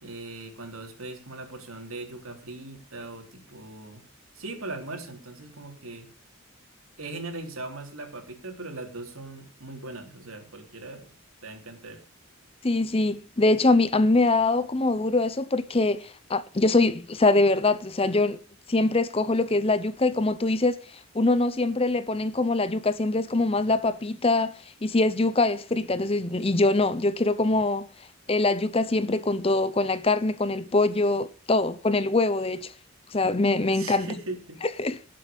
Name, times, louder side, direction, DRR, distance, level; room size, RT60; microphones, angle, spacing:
voice 1, 0.0-4.0 4.3-6.1 7.0-11.1 11.4-12.0 33.7-34.6, right 2 dB, 70° right, 3.7 m, -39 dB
voice 2, 12.6-18.4 18.7-20.8 21.1-27.9 28.3-32.7 33.1-34.1 34.8-35.0, left 2 dB, 25° left, 0.6 m, -23 dB
18.0 x 7.7 x 5.3 m
head